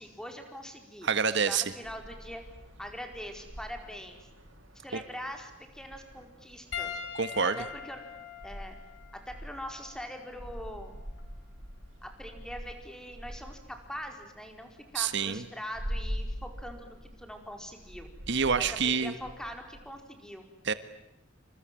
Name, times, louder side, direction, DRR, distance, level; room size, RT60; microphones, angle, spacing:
voice 1, 0.0-2.4 2.8-4.2 4.8-6.9 7.4-8.0 8.4-8.8 9.1-10.9 12.0-18.1 18.6-20.5, equal, 5° left, 4 dB, 4.7 m, -43 dB
voice 2, 1.0-1.6 4.9-5.0 7.1-7.6 14.9-15.4 18.3-19.1 20.6-20.7, right 5 dB, 65° right, 12 dB, 1.5 m, -27 dB
sound 1, 1.8-19.8, equal, 90° right, 7.0 m, -44 dB
Piano, 6.7-11.4 12.3-12.5 14.4-14.5, left 7 dB, 70° left, 5.1 m, -43 dB
29.0 x 26.5 x 7.7 m, 0.88 s
head